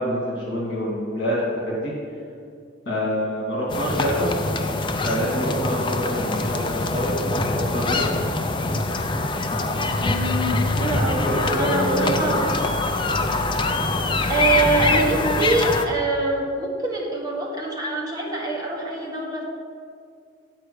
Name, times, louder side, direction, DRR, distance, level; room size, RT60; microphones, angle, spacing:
voice 1, 0.0-1.9 2.9-4.3 5.0-7.1 7.4-8.1 10.6-10.9 11.2-12.4, equal, 55° left, -5 dB, 2.1 m, -26 dB
sound 1, 3.7-15.9, left 2 dB, 25° left, 0.4 m, -24 dB
voice 2, 10.0-12.5 14.3-19.4, right 2 dB, 20° right, -3 dB, 1.4 m, -25 dB
8.8 x 4.6 x 6.6 m, 2.3 s
head